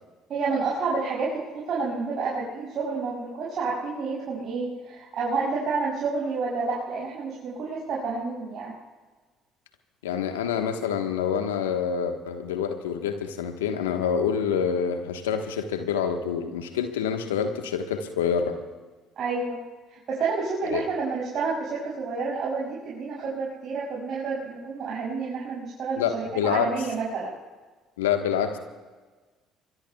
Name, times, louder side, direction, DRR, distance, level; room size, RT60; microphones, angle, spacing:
voice 1, 0.3-8.7 19.2-19.6 19.9-27.3, right 4 dB, 55° right, -6 dB, 6.5 m, -29 dB
voice 2, 10.0-18.6 20.7-20.8 26.0-26.7 28.0-28.6, left 7 dB, 85° left, 6 dB, 1.3 m, -27 dB
25.5 x 22.5 x 2.3 m, 1.3 s
hypercardioid pair, 55°, 0 cm